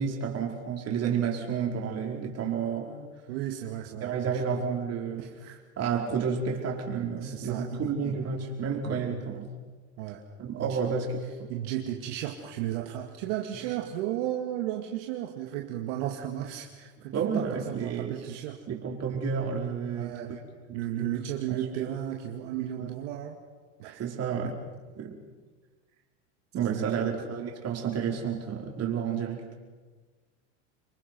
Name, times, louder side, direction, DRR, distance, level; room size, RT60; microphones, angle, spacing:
voice 1, 0.0-3.1 4.0-5.3 5.8-9.5 10.4-11.5 17.1-18.2 18.7-20.4 20.7-21.1 21.5-21.9 22.8-22.9 24.0-24.6 25.0-25.2 26.5-29.4, right 6 dB, 40° right, 0 dB, 4.8 m, -31 dB
voice 2, 3.3-4.4 5.2-5.6 7.2-8.2 8.8-9.0 10.0-10.2 10.6-10.9 11.5-18.6 19.9-20.4 20.7-23.4 23.8-24.1 24.4-24.5 26.6-27.2, right 12 dB, 70° right, 2 dB, 2.2 m, -34 dB
27.0 x 23.5 x 6.1 m, 1.4 s
supercardioid pair, 105°, 38 cm